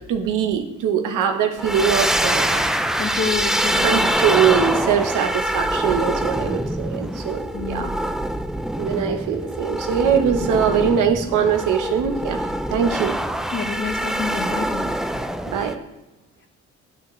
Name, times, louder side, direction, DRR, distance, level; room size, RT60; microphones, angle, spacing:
voice 1, 0.1-2.6 3.8-7.9 8.8-12.4 12.7-13.1 15.5-15.8, right 7 dB, 85° right, 5 dB, 1.0 m, -22 dB
sound 1, 1.6-15.7, right 1 dB, ahead, 0.3 m, -24 dB
voice 2, 3.0-4.1 5.2-5.3 6.4-6.6 7.5-7.9 13.5-14.9, left 5 dB, 40° left, 5 dB, 1.2 m, -29 dB
9.2 x 8.7 x 3.1 m, 1.0 s
cardioid pair, 90°, 30 cm